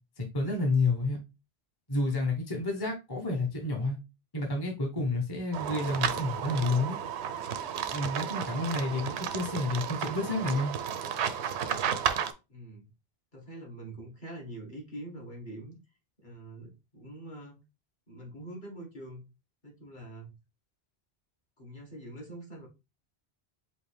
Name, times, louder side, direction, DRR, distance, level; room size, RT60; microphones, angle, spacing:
voice 1, 0.2-1.2 1.9-4.0 4.3-7.0 7.9-10.7, left 2 dB, 25° left, 0.9 m, -30 dB
sound 1, 5.5-12.3, right 8 dB, 90° right, 0.9 m, -33 dB
voice 2, 12.5-12.9 13.3-15.8 16.2-17.6 18.1-19.2 19.6-20.3 21.6-22.7, right 1 dB, 45° left, 1.7 m, -44 dB
5.3 x 2.6 x 3.3 m
omnidirectional pair, 1.1 m